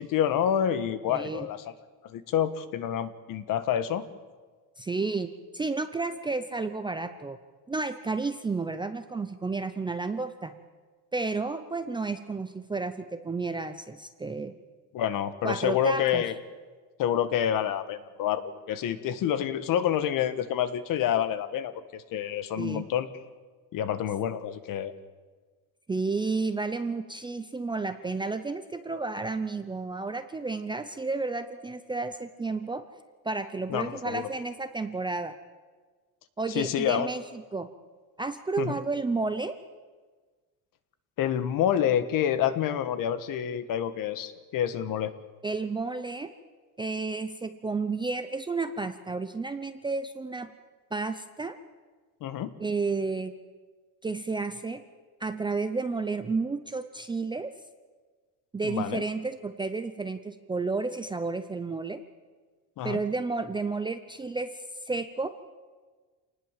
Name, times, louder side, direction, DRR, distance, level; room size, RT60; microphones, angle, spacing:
voice 1, 0.0-1.6 2.0-4.0 14.9-16.3 17.0-23.1 23.7-24.9 33.7-34.3 36.5-37.1 38.6-38.8 41.2-45.1 52.2-52.5 58.6-59.0 62.8-63.0, left 9 dB, 45° left, 12 dB, 1.6 m, -28 dB
voice 2, 1.1-1.5 4.8-7.4 7.7-10.5 11.1-14.5 15.4-16.2 22.6-22.8 25.9-32.8 33.2-35.3 36.4-37.2 37.5-37.7 38.2-39.6 45.4-46.3 46.8-50.5 50.9-51.6 52.6-53.3 54.0-54.8 55.2-57.5 58.5-62.0 62.8-65.3, right 3 dB, 10° right, 9 dB, 0.7 m, -31 dB
27.5 x 19.5 x 7.5 m, 1.4 s
cardioid pair, 155°, 46 cm